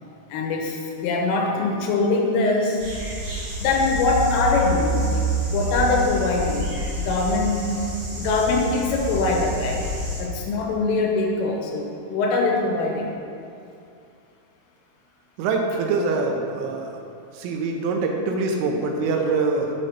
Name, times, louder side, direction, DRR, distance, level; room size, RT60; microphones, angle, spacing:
voice 1, 0.3-2.8 3.6-5.3 5.5-6.7 7.0-7.7 8.1-9.8 10.2-13.1 17.6-17.8, left 3 dB, 80° left, 0 dB, 3.5 m, -23 dB
sound 1, 2.8-10.2, right 1 dB, 55° right, 1.6 m, -27 dB
voice 2, 15.4-16.9 17.4-19.7, right 3 dB, 80° right, 2 dB, 3.2 m, -24 dB
7.5 x 6.3 x 5.0 m, 2.5 s
omnidirectional pair, 5.8 m